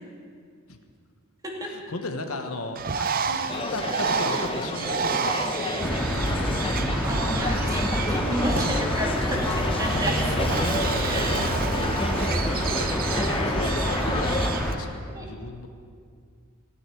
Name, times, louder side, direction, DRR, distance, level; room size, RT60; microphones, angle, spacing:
voice 1, 1.7-6.4 13.2-15.7, left 2 dB, 75° left, 5 dB, 1.3 m, -36 dB
Bird, 2.7-14.7, right 6 dB, 40° right, 0.6 m, -31 dB
sound 1, 3.5-14.5, left 2 dB, 25° left, 1.0 m, -31 dB
sound 2, 5.8-14.7, equal, ahead, 2.0 m, -27 dB
voice 2, 7.0-11.6 11.9-12.4 13.1-13.5 15.1-15.3, equal, 15° right, -1 dB, 2.6 m, -32 dB
16.0 x 9.1 x 9.3 m, 2.2 s
head